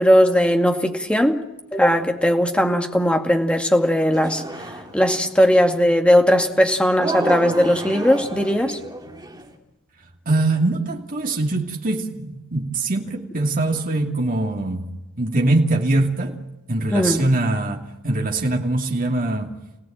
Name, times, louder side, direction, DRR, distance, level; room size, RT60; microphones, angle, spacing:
voice 1, 0.0-1.4 1.7-4.4 4.9-8.8 16.9-17.2, equal, 5° left, 2.2 m, -18 dB
sound 1, 4.1-5.3 7.0-9.5, right 2 dB, 20° right, 3.0 m, -30 dB
voice 2, 10.3-14.9 15.2-16.4 16.7-19.5, right 2 dB, 40° right, 2.8 m, -22 dB
30.0 x 18.0 x 8.9 m
head